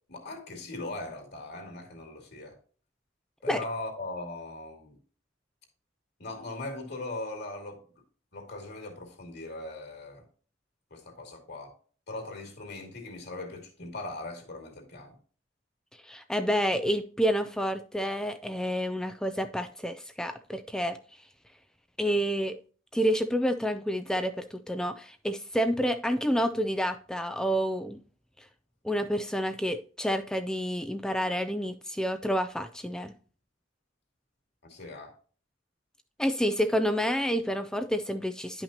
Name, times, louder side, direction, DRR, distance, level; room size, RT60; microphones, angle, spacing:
voice 1, 0.1-2.6 3.4-4.9 6.2-7.8 8.3-10.2 10.9-11.7 12.1-15.2 34.6-35.1, left 2 dB, 60° left, 2.6 m, -39 dB
voice 2, 16.0-21.0 22.0-22.5 22.9-28.0 28.8-33.1 36.2-38.6, equal, 5° left, 0.4 m, -29 dB
10.5 x 5.7 x 2.8 m
head